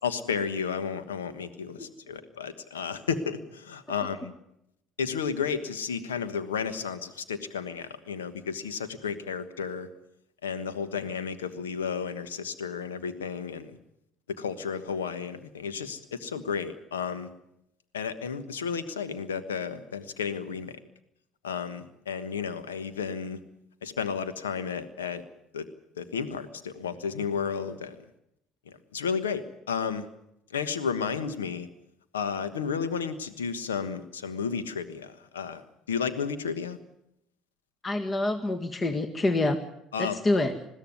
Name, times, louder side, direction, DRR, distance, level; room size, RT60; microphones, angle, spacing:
voice 1, 0.0-4.3 5.0-9.9 10.4-13.8 14.3-17.3 17.9-20.8 21.4-23.4 23.8-25.2 25.5-25.7 25.9-28.0 28.6-30.1 30.5-31.7 32.1-36.8 39.9-40.2, left 6 dB, 85° left, 13 dB, 1.3 m, -32 dB
voice 2, 37.8-39.6 40.0-40.5, left 2 dB, 30° left, 7 dB, 1.8 m, -26 dB
21.0 x 15.5 x 9.6 m, 0.82 s
hypercardioid pair, 60°, 0 cm